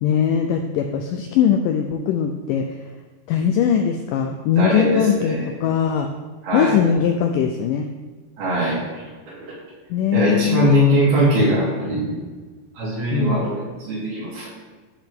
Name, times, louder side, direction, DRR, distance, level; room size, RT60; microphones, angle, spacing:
voice 1, 0.0-2.8 3.3-6.1 6.5-7.9 9.9-10.7 13.1-13.5, left 8 dB, 85° left, 4 dB, 1.9 m, -20 dB
voice 2, 4.6-5.5 6.4-6.7 8.4-9.5 10.1-12.2 12.7-14.5, equal, 70° right, -7 dB, 5.1 m, -21 dB
12.5 x 6.7 x 3.7 m, 1.4 s
omnidirectional pair, 4.5 m